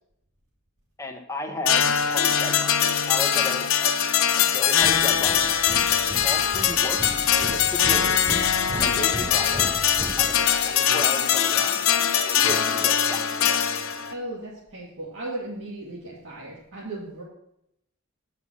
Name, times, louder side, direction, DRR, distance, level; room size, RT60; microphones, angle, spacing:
voice 1, 1.0-3.9 4.4-5.5 6.2-7.0 7.4-8.2 8.7-9.7 10.2-13.6, left 2 dB, 15° left, 4 dB, 1.1 m, -35 dB
sound 1, 1.6-14.1, left 8 dB, 75° left, 0.7 m, -22 dB
sound 2, 4.8-10.8, right 1 dB, 10° right, 0.4 m, -36 dB
voice 2, 14.1-17.2, right 1 dB, 65° right, -8 dB, 2.4 m, -36 dB
9.2 x 5.7 x 6.2 m, 0.80 s
head